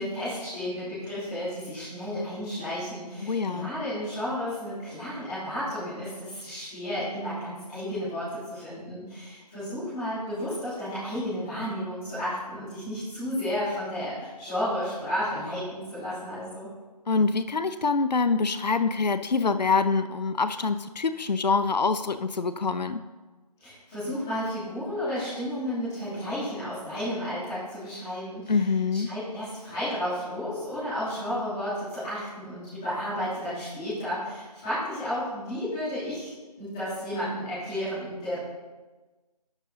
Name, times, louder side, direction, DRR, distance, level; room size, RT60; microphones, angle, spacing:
voice 1, 0.0-16.7 23.6-28.5 29.0-38.4, equal, 5° left, -15 dB, 1.6 m, -32 dB
voice 2, 3.2-3.7 17.1-23.0 28.5-29.1, left 4 dB, 85° left, 11 dB, 0.6 m, -25 dB
10.5 x 7.7 x 2.8 m, 1.3 s
figure-of-eight pair, 180°, 21 cm